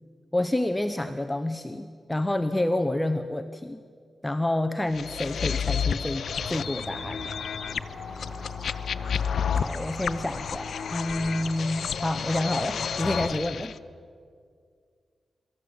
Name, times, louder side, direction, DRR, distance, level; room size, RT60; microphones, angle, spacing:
voice 1, 0.3-3.8 4.2-7.2 9.5-13.7, left 1 dB, 10° left, 8 dB, 0.7 m, -28 dB
sound 1, 4.9-13.7, left 7 dB, 75° left, 0.6 m, -31 dB
sound 2, 6.4-13.4, right 1 dB, 15° right, 1.9 m, -43 dB
24.0 x 13.5 x 8.7 m, 2.1 s
wide cardioid pair, 115°, 0 cm